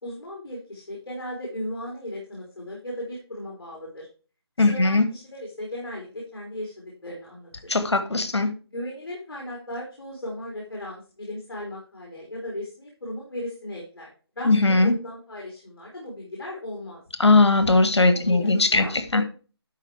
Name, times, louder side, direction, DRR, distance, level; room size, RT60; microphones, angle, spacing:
voice 1, 0.0-4.1 4.6-7.8 8.7-14.1 14.4-17.0 18.1-19.2, left 1 dB, 55° left, -2 dB, 3.7 m, -36 dB
voice 2, 4.6-5.0 7.7-8.5 14.4-14.9 17.2-18.8 19.1-19.2, left 3 dB, 85° left, 11 dB, 1.7 m, -19 dB
11.5 x 4.6 x 4.7 m, 0.36 s
figure-of-eight pair, 170°, 14 cm